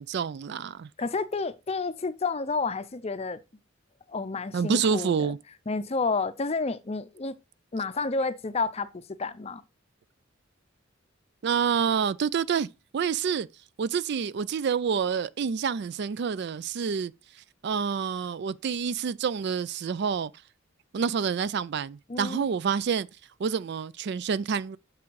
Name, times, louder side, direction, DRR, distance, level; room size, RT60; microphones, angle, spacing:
voice 1, 0.0-0.9 4.5-5.4 11.4-12.7 12.9-13.5 13.8-17.1 17.6-20.3 20.9-23.1 23.4-24.8, right 6 dB, 55° right, 0.4 m, -28 dB
voice 2, 1.0-3.4 4.1-5.3 5.7-7.4 7.7-9.6 22.1-22.5, left 3 dB, 30° left, 0.5 m, -30 dB
6.3 x 6.0 x 4.7 m
head